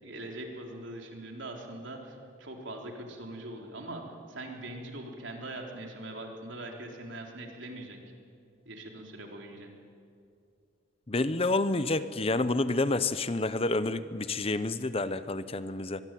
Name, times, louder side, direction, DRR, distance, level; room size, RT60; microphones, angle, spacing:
voice 1, 0.0-8.0 8.7-9.7, right 1 dB, 70° right, 1 dB, 3.9 m, -42 dB
voice 2, 11.1-16.0, left 2 dB, 30° left, 13 dB, 0.7 m, -29 dB
23.0 x 23.0 x 9.3 m, 2.4 s
head